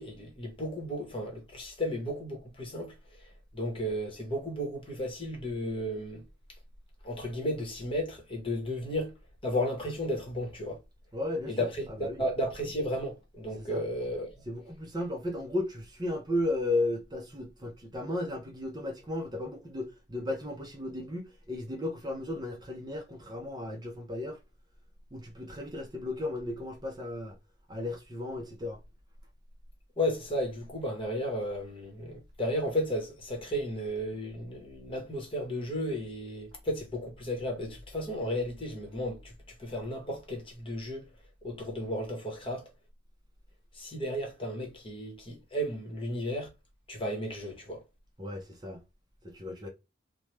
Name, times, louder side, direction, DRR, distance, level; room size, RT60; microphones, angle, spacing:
voice 1, 0.0-2.9 3.5-6.2 7.0-9.1 9.4-10.8 11.5-14.3 30.0-39.3 39.6-41.1 41.4-42.6 43.7-46.5 46.9-47.8, equal, 25° left, 1.0 m, -34 dB
voice 2, 11.1-11.7 12.0-12.2 13.6-13.8 14.5-24.4 25.1-27.4 27.7-28.8 48.2-48.8 49.2-49.7, left 2 dB, 20° right, 0.6 m, -35 dB
3.1 x 2.1 x 3.1 m
head